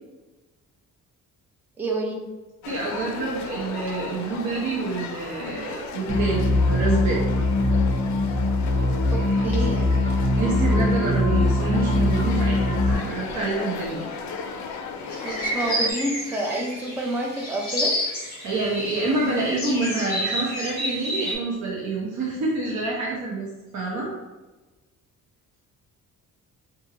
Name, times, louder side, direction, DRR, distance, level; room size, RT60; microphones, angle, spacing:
voice 1, 1.8-2.3 9.1-9.9 15.2-18.0, right 2 dB, 5° right, 1 dB, 0.3 m, -28 dB
sound 1, 2.6-15.9, left 5 dB, 60° left, 0.5 m, -35 dB
voice 2, 2.7-7.2 10.4-14.1 18.4-23.5 23.7-24.1, right 3 dB, 60° right, -4 dB, 0.7 m, -27 dB
sound 2, 6.1-12.9, left 2 dB, 40° right, 1.3 m, -22 dB
sound 3, 15.1-21.3, equal, 25° left, 1.4 m, -29 dB
4.8 x 2.5 x 2.8 m, 1.2 s
cardioid pair, 180°, 33 cm